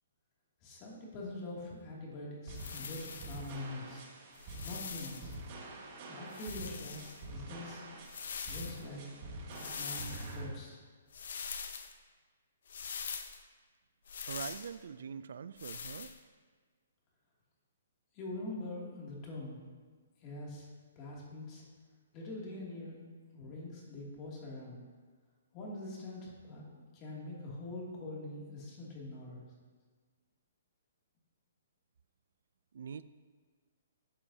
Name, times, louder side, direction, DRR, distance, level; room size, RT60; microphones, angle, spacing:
voice 1, 0.6-4.1 4.6-5.4 6.1-7.9 8.5-9.0 9.5-10.8 18.1-19.6 20.2-20.7 21.0-21.6 22.1-23.0 23.3-24.8 25.5-29.4, left 2 dB, 30° left, -4 dB, 2.5 m, -44 dB
sound 1, 2.5-3.5 4.3-5.4 6.3-7.2 8.0-8.8 9.5-10.4 11.1-11.9 12.7-13.4 14.1-14.7 15.6-16.2, left 6 dB, 65° left, 0.7 m, -43 dB
sound 2, 2.5-10.5, right 2 dB, 40° right, 1.6 m, -46 dB
voice 2, 14.2-16.1 32.7-33.0, right 7 dB, 70° right, 15 dB, 0.3 m, -43 dB
12.5 x 7.6 x 2.8 m, 1.5 s
hypercardioid pair, 150°, 0 cm